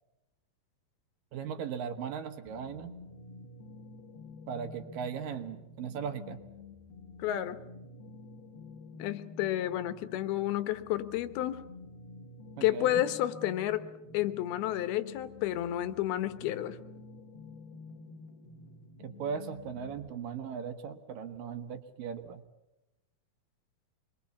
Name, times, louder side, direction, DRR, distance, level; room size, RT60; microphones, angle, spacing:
voice 1, 1.3-2.9 4.5-6.4 12.6-12.9 19.0-22.4, right 7 dB, 70° right, 8 dB, 2.7 m, -38 dB
sound 1, 2.5-20.1, left 3 dB, 50° left, 1.5 m, -49 dB
voice 2, 7.2-7.6 9.0-11.6 12.6-13.9 14.1-16.8, left 13 dB, 80° left, 12 dB, 2.9 m, -31 dB
26.0 x 22.0 x 7.2 m, 0.96 s
omnidirectional pair, 4.5 m